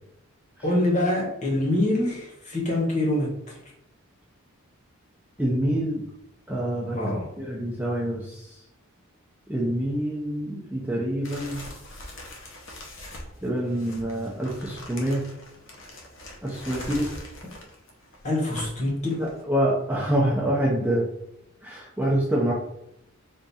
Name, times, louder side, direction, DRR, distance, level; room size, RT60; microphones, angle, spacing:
voice 1, 0.6-3.6 6.9-7.3 18.2-19.3, left 1 dB, 30° left, -2 dB, 1.0 m, -25 dB
voice 2, 5.4-6.0 6.5-7.1 7.4-8.6 9.5-11.6 13.4-15.2 16.4-17.1 19.2-21.1 21.6-22.5, right 1 dB, 5° right, -5 dB, 0.6 m, -26 dB
sound 1, 11.2-19.4, left 1 dB, 55° left, 0.8 m, -42 dB
3.6 x 2.5 x 4.1 m, 0.81 s
head